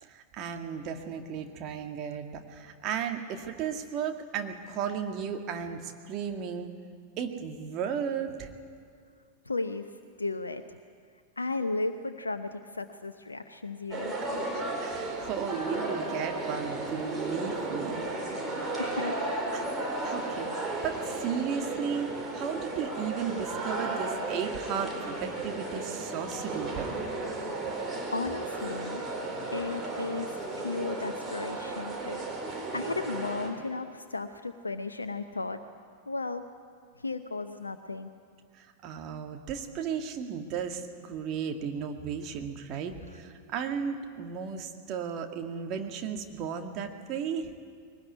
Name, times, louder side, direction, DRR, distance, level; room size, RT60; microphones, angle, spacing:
voice 1, 0.0-6.7 7.2-8.5 14.1-14.2 14.5-18.3 19.5-19.7 20.0-26.9 38.5-47.5, right 7 dB, 35° right, 4 dB, 2.1 m, -35 dB
voice 2, 9.5-9.9 10.2-10.6 11.4-14.1 18.8-19.4 28.1-29.0 29.5-32.2 32.5-35.6 36.1-36.4 37.0-38.1, left 3 dB, 80° left, 9 dB, 0.8 m, -34 dB
sound 1, 13.9-33.5, right 2 dB, 20° right, 4.4 m, -34 dB
21.5 x 19.0 x 9.7 m, 2.1 s
figure-of-eight pair, 90°, 0 cm